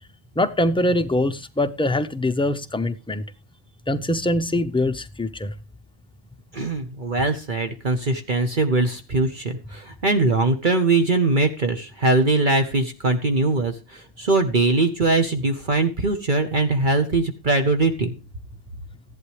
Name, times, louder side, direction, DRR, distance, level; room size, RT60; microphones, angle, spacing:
voice 1, 0.4-3.2 3.9-5.5, left 1 dB, 5° left, 0.5 m, -23 dB
voice 2, 6.5-18.1, right 2 dB, 45° right, 1.2 m, -21 dB
14.0 x 11.5 x 3.2 m
omnidirectional pair, 1.2 m